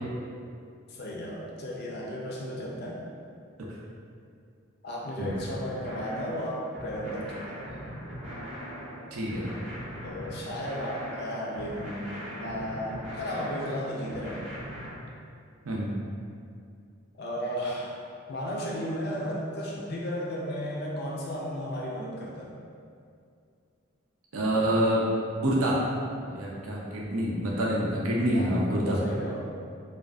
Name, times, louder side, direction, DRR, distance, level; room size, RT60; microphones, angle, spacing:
voice 1, 0.9-3.0 4.8-7.6 10.0-14.4 17.2-18.0 18.3-22.6 28.3-29.5, equal, 50° left, -3 dB, 0.4 m, -34 dB
sound 1, 5.2-14.9, equal, 35° right, 0.7 m, -40 dB
voice 2, 9.1-9.4 15.6-15.9 24.3-25.0 25.3-25.8 26.3-29.0, right 1 dB, 90° right, -4 dB, 0.5 m, -27 dB
2.5 x 2.2 x 2.2 m, 2.4 s
head